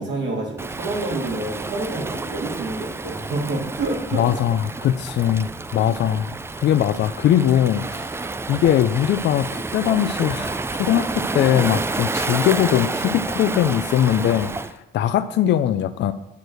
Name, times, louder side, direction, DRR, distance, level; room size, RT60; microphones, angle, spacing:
voice 1, 0.0-4.3 5.7-5.9, right 2 dB, 65° right, -2 dB, 2.4 m, -28 dB
Waves surf, 0.6-14.7, right 3 dB, 15° right, 0.3 m, -29 dB
voice 2, 4.1-8.1 8.5-16.1, left 10 dB, 65° left, 10 dB, 0.4 m, -21 dB
8.3 x 4.5 x 6.4 m, 1.0 s
cardioid pair, 90°, 20 cm